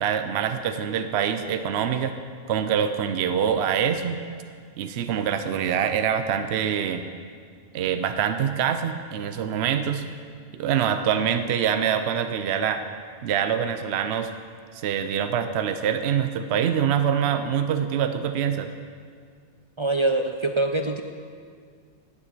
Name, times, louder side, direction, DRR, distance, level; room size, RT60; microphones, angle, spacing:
voice 1, 0.0-2.2 2.5-4.2 4.8-7.0 7.7-10.1 10.5-12.8 13.2-14.3 14.7-18.7, right 8 dB, 70° right, 8 dB, 0.8 m, -25 dB
voice 2, 19.8-21.0, right 2 dB, 50° right, 5 dB, 0.3 m, -24 dB
10.5 x 7.4 x 9.0 m, 2.1 s
omnidirectional pair, 1.2 m